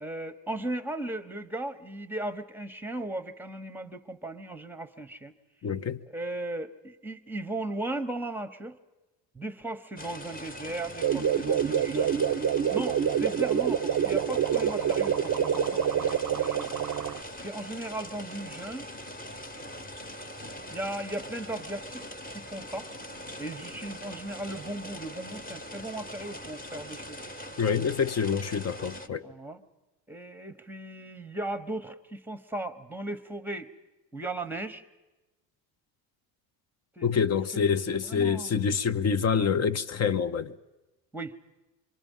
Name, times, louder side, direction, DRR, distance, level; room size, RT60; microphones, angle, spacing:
voice 1, 0.0-5.3 6.1-8.8 9.3-16.7 17.4-18.9 20.7-22.0 22.3-22.9 23.4-27.2 29.2-29.6 30.1-33.7 34.1-34.8 37.0-37.1 37.5-37.6 38.0-38.5 41.1-41.3, right 1 dB, 5° right, 1.1 m, -37 dB
voice 2, 5.6-6.0 27.6-29.3 37.0-40.6, left 6 dB, 35° left, 0.8 m, -26 dB
sound 1, 10.0-29.1, equal, 20° left, 1.4 m, -42 dB
sound 2, 11.0-17.2, right 8 dB, 35° right, 0.7 m, -26 dB
26.5 x 23.5 x 5.5 m
supercardioid pair, 100°, 47 cm